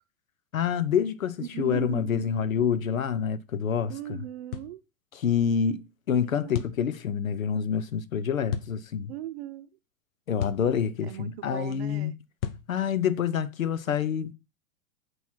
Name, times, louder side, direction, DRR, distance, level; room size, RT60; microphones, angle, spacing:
voice 1, 0.5-3.9 5.2-9.1 10.3-12.1 12.7-14.3, left 7 dB, 70° left, 1.0 m, -27 dB
voice 2, 1.4-2.4 3.9-4.8 6.4-6.7 9.1-9.7 11.0-12.2, right 11 dB, 45° right, 0.9 m, -38 dB
sound 1, 4.5-4.8 6.5-6.8 8.5-8.7 10.4-10.7 12.4-12.7, left 10 dB, 40° left, 0.9 m, -33 dB
8.2 x 4.9 x 5.8 m
figure-of-eight pair, 105°, 42 cm